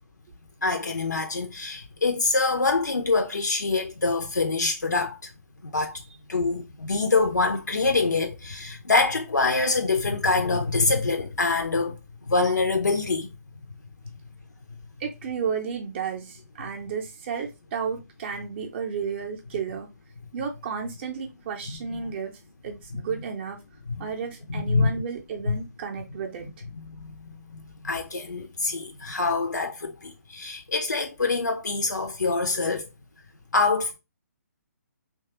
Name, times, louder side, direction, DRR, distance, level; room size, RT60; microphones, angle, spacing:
voice 1, 0.6-5.3 5.6-6.0 6.3-12.0 12.3-13.3 21.7-21.8 23.9-24.0 24.5-24.9 26.7-32.9 33.5-34.0, left 3 dB, 75° left, 0.5 m, -25 dB
voice 2, 15.0-19.9 20.3-23.6 24.0-26.5, right 6 dB, 35° right, 0.5 m, -32 dB
3.0 x 2.3 x 2.8 m
figure-of-eight pair, 135°, 10 cm